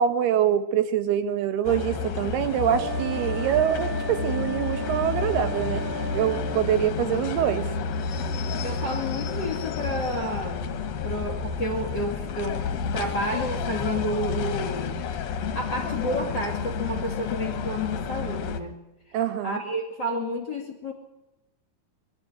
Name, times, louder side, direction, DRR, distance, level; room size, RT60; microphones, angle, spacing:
voice 1, 0.0-5.8 6.1-7.7 19.1-19.6, right 10 dB, 80° right, 11 dB, 3.1 m, -25 dB
sound 1, 1.6-18.6, left 5 dB, 60° left, 2.0 m, -30 dB
sound 2, 2.7-6.6, right 1 dB, 40° right, 4.6 m, -35 dB
voice 2, 8.6-10.7 11.0-15.0 15.5-18.8 19.4-20.9, left 1 dB, 35° left, 3 dB, 2.4 m, -30 dB
23.5 x 12.0 x 9.7 m, 0.99 s
omnidirectional pair, 4.5 m